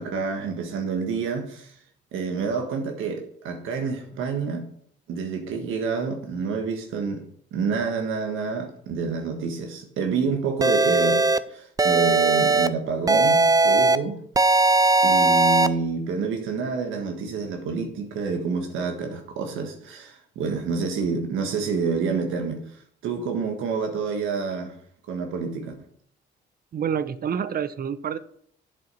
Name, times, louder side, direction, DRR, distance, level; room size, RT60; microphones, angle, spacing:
voice 1, 0.0-1.7 2.1-4.6 5.1-7.2 7.5-14.2 15.0-22.6 23.0-24.8 25.1-25.7, right 5 dB, 85° right, 1.6 m, -28 dB
sound 1, 10.6-11.4 11.8-12.7 13.1-14.0 14.4-15.7, right 3 dB, 20° right, 0.5 m, -18 dB
voice 2, 26.7-28.2, right 8 dB, 50° right, 0.8 m, -27 dB
7.8 x 7.7 x 5.6 m
cardioid pair, 90°, 20 cm